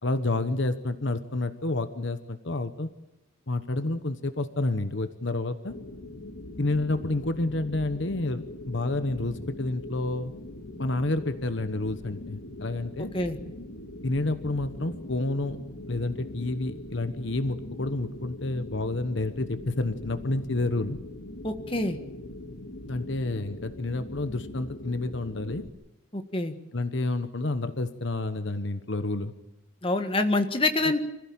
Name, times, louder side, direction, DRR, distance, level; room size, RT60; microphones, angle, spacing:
voice 1, 0.0-2.9 3.5-5.7 6.6-10.3 10.8-13.1 14.0-15.6 15.9-21.0 22.9-25.6 26.7-29.3, left 2 dB, 60° left, 10 dB, 1.2 m, -29 dB
sound 1, 5.7-25.7, left 1 dB, 80° left, 2.1 m, -42 dB
voice 2, 21.4-22.0 26.1-26.5 29.8-31.0, left 2 dB, 25° left, 6 dB, 1.7 m, -26 dB
26.5 x 15.5 x 8.8 m, 0.99 s
head